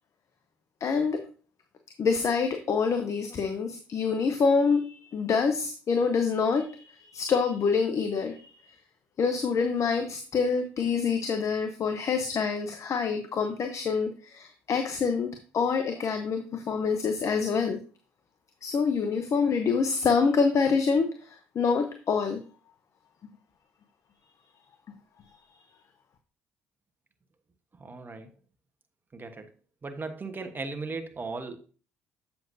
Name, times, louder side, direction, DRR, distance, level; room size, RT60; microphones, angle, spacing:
voice 1, 0.8-1.3 2.0-8.7 9.2-17.8 18.6-22.4, left 5 dB, 50° left, 7 dB, 0.9 m, -26 dB
voice 2, 27.8-28.3 29.1-29.5 29.8-31.6, right 3 dB, 30° right, 7 dB, 1.2 m, -37 dB
7.7 x 7.1 x 2.7 m, 0.37 s
hypercardioid pair, 55°, 7 cm